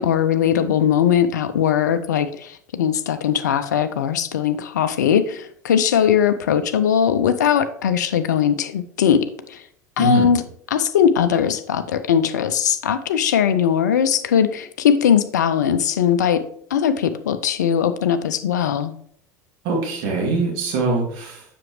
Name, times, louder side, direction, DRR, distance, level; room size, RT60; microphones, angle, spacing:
voice 1, 0.0-9.6 10.0-10.4 10.7-16.4 16.7-18.9, left 8 dB, 75° left, 11 dB, 0.4 m, -20 dB
voice 2, 10.0-10.3 19.6-21.4, right 3 dB, 55° right, -1 dB, 2.4 m, -23 dB
7.5 x 5.9 x 3.1 m, 0.64 s
figure-of-eight pair, 75°, 10 cm